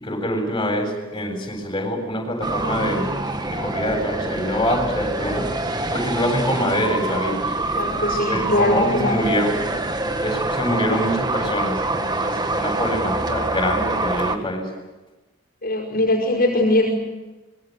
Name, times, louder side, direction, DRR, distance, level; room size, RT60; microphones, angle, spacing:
voice 1, 0.0-5.5 5.9-7.5 8.3-9.6 10.2-14.7, equal, 20° left, 1 dB, 7.7 m, -25 dB
sound 1, 2.4-14.4, right 2 dB, 20° right, 1.5 m, -25 dB
voice 2, 7.6-9.3 15.6-16.9, left 1 dB, 45° left, 0 dB, 5.2 m, -21 dB
25.5 x 22.5 x 8.2 m, 1.1 s
head